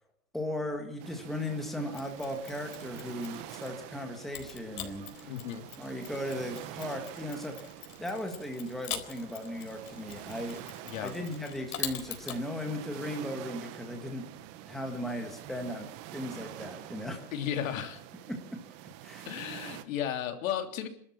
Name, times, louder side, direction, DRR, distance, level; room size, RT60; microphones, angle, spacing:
voice 1, 0.3-5.3 5.8-10.6 11.0-14.2 14.7-17.2 19.0-19.3, left 1 dB, ahead, 3 dB, 1.7 m, -37 dB
sound 1, 1.0-19.8, right 13 dB, 35° right, 1.6 m, -46 dB
Mechanisms, 1.9-3.8 4.3-12.4, left 10 dB, 85° left, 4.1 m, -43 dB
voice 2, 5.2-5.6 10.8-11.1 17.3-18.0 19.2-20.9, left 9 dB, 60° left, 7 dB, 3.3 m, -34 dB
28.0 x 13.0 x 7.3 m, 0.65 s
supercardioid pair, 170°, 44 cm